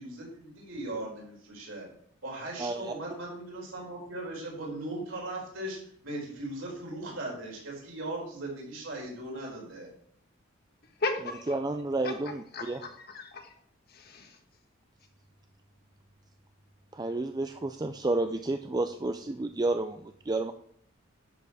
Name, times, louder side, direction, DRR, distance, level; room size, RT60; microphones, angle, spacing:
voice 1, 0.0-1.9 2.2-5.8 6.0-9.9, right 1 dB, 70° right, -2 dB, 4.5 m, -38 dB
voice 2, 2.6-2.9 11.5-12.8 16.9-20.5, right 2 dB, 20° right, 8 dB, 0.4 m, -31 dB
voice 3, 11.0-11.5 12.0-12.1 12.5-13.5 13.9-14.4, left 3 dB, 50° left, 5 dB, 1.5 m, -35 dB
11.0 x 6.8 x 4.9 m, 0.63 s
head